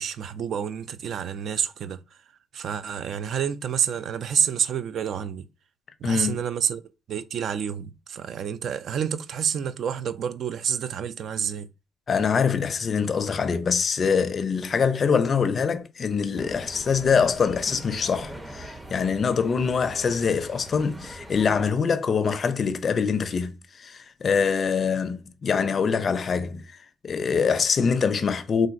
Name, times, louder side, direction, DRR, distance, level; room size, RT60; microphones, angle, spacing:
voice 1, 0.0-2.0 2.5-5.4 6.0-6.8 7.1-11.7, right 8 dB, 65° right, 0.3 m, -28 dB
voice 2, 6.0-6.4 12.1-26.7 27.0-28.7, left 6 dB, 45° left, 0.4 m, -24 dB
sound 1, 16.4-21.7, right 1 dB, 15° right, 0.5 m, -41 dB
3.7 x 2.4 x 2.5 m
cardioid pair, 90°, 0 cm